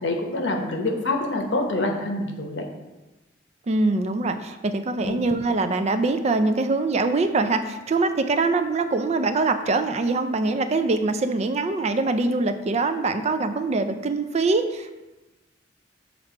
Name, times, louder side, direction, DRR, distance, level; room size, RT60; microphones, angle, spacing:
voice 1, 0.0-2.6 5.0-5.2, left 2 dB, 80° left, 3 dB, 1.0 m, -26 dB
voice 2, 3.7-15.0, right 3 dB, 35° right, 9 dB, 0.4 m, -23 dB
7.3 x 3.2 x 4.9 m, 1.1 s
head